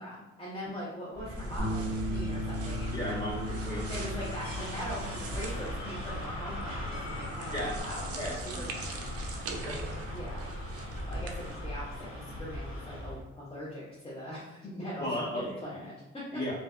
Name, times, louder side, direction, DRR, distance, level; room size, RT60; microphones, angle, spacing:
voice 1, 0.0-1.8 2.1-3.2 3.9-8.1 8.6-9.0 10.1-10.5 11.1-11.9 12.1-16.3, equal, 20° left, -9 dB, 0.6 m, -41 dB
sound 1, 1.1-13.2, left 1 dB, 75° left, 0.9 m, -40 dB
sound 2, 1.2-11.6, right 2 dB, 50° right, 0.4 m, -41 dB
Bass guitar, 1.6-7.8, left 1 dB, 5° right, 1.0 m, -39 dB
voice 2, 2.9-3.9 7.5-7.8 8.1-8.3 9.6-9.8 15.0-15.8 16.3-16.5, left 1 dB, 35° left, -8 dB, 1.3 m, -35 dB
2.5 x 2.1 x 2.3 m, 0.98 s
cardioid pair, 90°, 30 cm